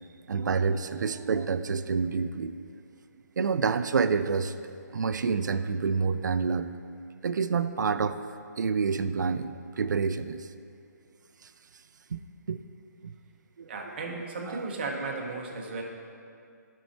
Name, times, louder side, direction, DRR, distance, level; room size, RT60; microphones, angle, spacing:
voice 1, 0.3-2.5 3.4-4.5 4.9-6.7 7.2-8.2 8.6-9.5 9.8-10.5 12.1-12.2 12.5-12.6 13.0-13.1 13.6-13.7 14.1-14.2 14.5-14.7, right 5 dB, 85° right, 11 dB, 0.4 m, -28 dB
voice 2, 13.7-15.8, right 3 dB, 35° right, 0 dB, 1.1 m, -35 dB
12.0 x 5.5 x 4.3 m, 2.4 s
hypercardioid pair, 170°, 10 cm